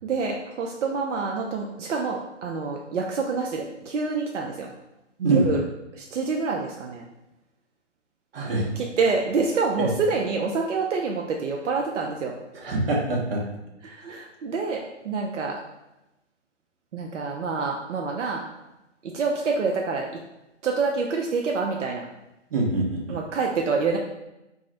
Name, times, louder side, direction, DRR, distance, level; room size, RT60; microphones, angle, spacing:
voice 1, 0.0-4.7 5.3-5.6 5.9-7.0 8.5-12.3 13.8-15.6 16.9-18.4 19.0-20.1 20.6-22.1 23.1-24.0, right 4 dB, 80° right, 1 dB, 0.5 m, -27 dB
voice 2, 5.2-5.5 8.3-8.7 9.8-9.9 12.5-13.4 14.0-14.2 22.5-23.2, right 2 dB, 50° right, -2 dB, 0.9 m, -24 dB
2.4 x 2.0 x 3.7 m, 0.94 s
figure-of-eight pair, 135°, 36 cm